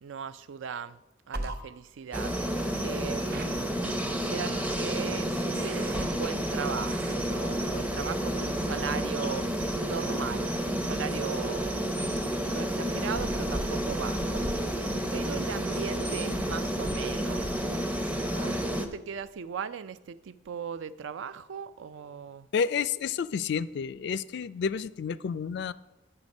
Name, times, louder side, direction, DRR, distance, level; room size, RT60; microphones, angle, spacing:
voice 1, 0.0-1.0 1.3-9.5 9.8-11.8 12.1-14.8 15.1-17.5 18.2-22.5, right 7 dB, 75° right, 15 dB, 0.4 m, -38 dB
sound 1, 1.3-1.6 3.3-3.5 4.4-4.8 5.5-6.0 6.9-7.2, right 2 dB, 50° right, 0.8 m, -38 dB
sound 2, 2.1-18.9, equal, 10° right, 0.5 m, -30 dB
voice 2, 22.5-25.7, left 6 dB, 60° left, 17 dB, 0.3 m, -30 dB
9.9 x 6.7 x 5.2 m, 1.0 s
head